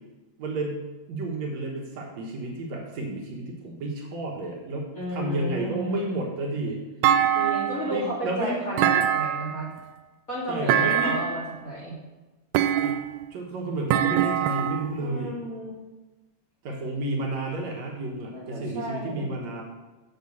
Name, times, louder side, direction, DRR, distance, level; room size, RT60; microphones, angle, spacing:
voice 1, 0.4-6.8 7.9-8.7 10.5-11.2 12.8-13.0 13.3-15.3 16.6-19.6, right 2 dB, 60° right, -1 dB, 2.3 m, -31 dB
voice 2, 4.9-6.0 7.3-9.7 10.3-12.0 15.0-15.8 18.3-19.4, right 1 dB, 30° left, -5 dB, 2.1 m, -33 dB
Thump thud, 7.0-8.0 8.8-9.7 10.7-11.4 12.5-13.2 13.9-14.9, right 10 dB, 90° right, 1.7 m, -23 dB
8.0 x 5.8 x 7.1 m, 1.2 s
omnidirectional pair, 3.9 m